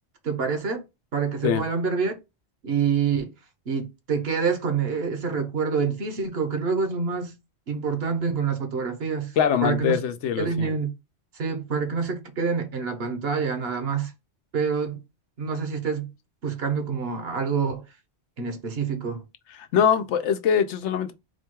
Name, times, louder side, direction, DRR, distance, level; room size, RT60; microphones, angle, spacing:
voice 1, 0.2-0.8 1.1-2.1 2.6-3.3 3.7-7.3 7.7-9.3 9.6-10.0 10.4-10.9 11.3-14.1 14.5-15.0 15.4-16.1 16.4-17.8 18.4-19.2, right 5 dB, 65° right, 1.1 m, -26 dB
voice 2, 9.4-10.7 19.6-21.1, left 8 dB, 90° left, 0.9 m, -23 dB
4.2 x 2.3 x 4.5 m
omnidirectional pair, 1.1 m